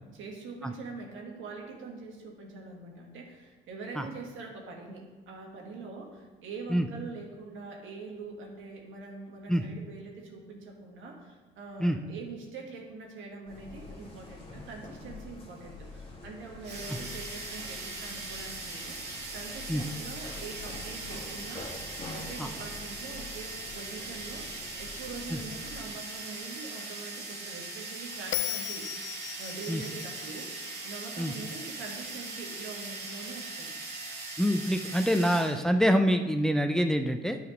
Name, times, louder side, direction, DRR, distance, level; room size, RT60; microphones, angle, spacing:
voice 1, 0.1-21.7 22.1-28.9 29.4-30.5 30.8-33.8, right 4 dB, 80° right, 0 dB, 1.8 m, -43 dB
sound 1, 13.5-26.1, left 3 dB, 30° left, 1.9 m, -46 dB
sound 2, 16.6-35.6, right 3 dB, 55° right, 2.6 m, -40 dB
Bell, 28.3-31.6, left 14 dB, 75° left, 0.4 m, -37 dB
voice 2, 34.4-37.4, equal, 5° left, 6 dB, 0.5 m, -25 dB
9.7 x 5.0 x 5.2 m, 1.2 s
cardioid pair, 90°, 20 cm